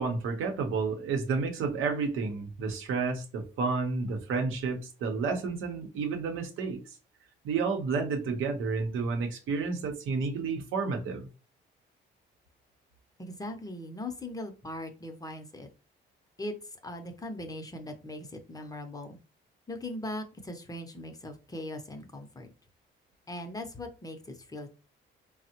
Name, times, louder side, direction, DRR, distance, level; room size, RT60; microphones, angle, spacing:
voice 1, 0.0-6.8 7.4-11.3, right 4 dB, 85° right, 0.7 m, -31 dB
voice 2, 13.2-15.7 16.4-19.2 19.7-22.5 23.3-24.7, left 1 dB, 20° left, 0.5 m, -40 dB
3.5 x 2.0 x 2.7 m
cardioid pair, 90°, 20 cm